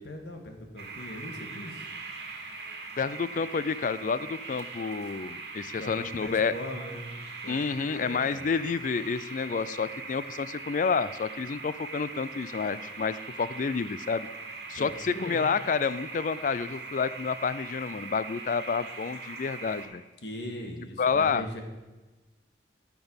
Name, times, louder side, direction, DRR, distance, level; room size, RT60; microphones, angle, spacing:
voice 1, 0.0-1.9 5.8-7.1 7.4-7.6 7.9-8.5 14.7-15.5 20.2-21.6, equal, 75° left, 4 dB, 2.0 m, -40 dB
sound 1, 0.8-19.9, right 4 dB, 65° right, 2.3 m, -41 dB
voice 2, 3.0-6.5 7.5-14.3 14.7-20.0 21.0-21.5, left 5 dB, 45° left, 16 dB, 0.4 m, -29 dB
14.0 x 6.0 x 7.1 m, 1.2 s
head